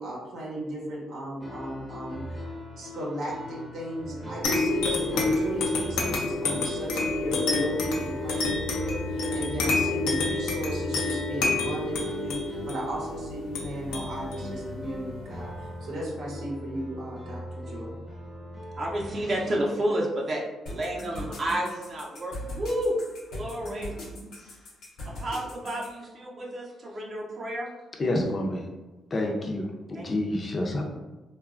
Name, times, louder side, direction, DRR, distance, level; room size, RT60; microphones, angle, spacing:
voice 1, 0.0-2.4 2.8-18.0, right 1 dB, 80° right, -4 dB, 0.7 m, -36 dB
sound 1, 1.4-19.6, equal, 5° right, 0.6 m, -40 dB
sound 2, 4.4-15.5, left 3 dB, 90° left, 0.5 m, -29 dB
voice 2, 18.8-23.0 23.3-23.9 25.0-27.7 29.9-30.1, right 1 dB, 45° right, -2 dB, 0.6 m, -30 dB
sound 3, 20.7-25.9, left 1 dB, 70° left, 0.9 m, -39 dB
voice 3, 28.0-28.7 29.1-30.9, left 1 dB, 35° left, 1 dB, 0.5 m, -28 dB
2.9 x 2.2 x 2.4 m, 1.2 s
cardioid pair, 90°, 0 cm